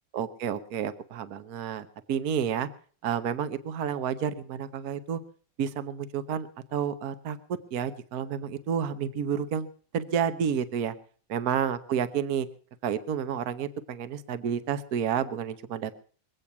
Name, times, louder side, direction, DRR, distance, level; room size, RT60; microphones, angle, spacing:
voice 1, 0.1-2.7 3.0-5.2 5.6-7.4 7.7-9.7 9.9-10.9 11.3-12.5 12.8-15.9, right 8 dB, 60° right, 12 dB, 1.3 m, -30 dB
23.0 x 8.5 x 5.9 m, 0.44 s
omnidirectional pair, 1.9 m